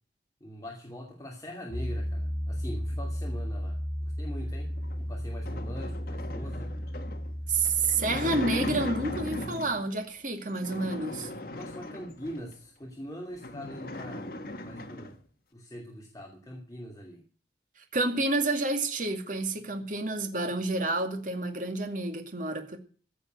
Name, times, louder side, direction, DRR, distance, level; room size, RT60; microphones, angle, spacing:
voice 1, 0.4-6.7 11.2-14.3 14.6-15.1 15.5-17.2, equal, 20° left, 2.6 m, -43 dB
Piano, 1.7-9.4, equal, 10° right, 5.1 m, -34 dB
sound 1, 4.7-9.9 10.5-12.5 13.0-13.1 13.3-15.2, left 1 dB, 55° left, 1.7 m, -38 dB
voice 2, 7.5-11.3 17.9-22.8, right 2 dB, 50° right, 2.3 m, -29 dB
15.5 x 7.3 x 8.0 m
head